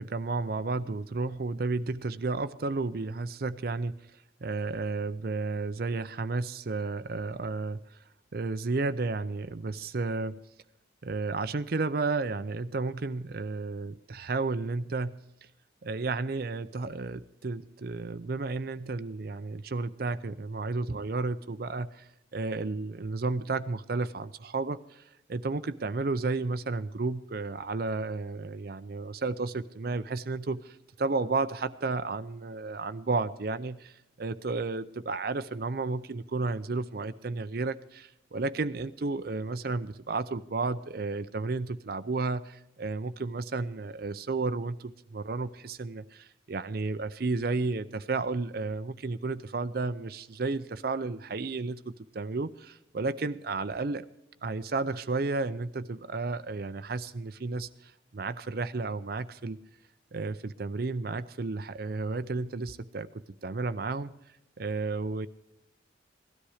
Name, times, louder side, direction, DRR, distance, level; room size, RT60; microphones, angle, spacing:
voice 1, 0.0-8.0 8.3-10.4 11.0-15.2 15.8-54.1 54.4-59.6 60.1-63.1 63.4-64.1 64.6-65.3, right 3 dB, 55° right, 11 dB, 0.5 m, -32 dB
17.0 x 13.0 x 4.9 m, 0.81 s
head